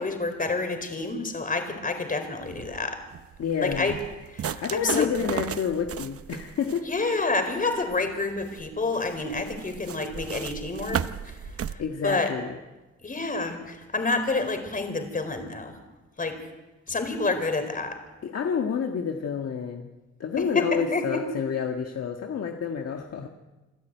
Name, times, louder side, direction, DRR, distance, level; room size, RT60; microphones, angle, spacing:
voice 1, 0.0-3.0 3.6-4.0 4.3-5.1 6.9-11.4 11.7-12.3 13.0-15.8 16.2-16.4 16.9-18.0 20.4-21.2, left 3 dB, 30° left, 7 dB, 4.4 m, -28 dB
sound 1, 2.5-11.8, right 8 dB, 50° right, 0.9 m, -36 dB
voice 2, 3.4-4.0 4.6-6.9 11.8-12.6 18.2-19.9 20.2-23.3, left 7 dB, 55° left, 3 dB, 1.7 m, -29 dB
27.0 x 11.5 x 9.2 m, 1.1 s
cardioid pair, 90°, 30 cm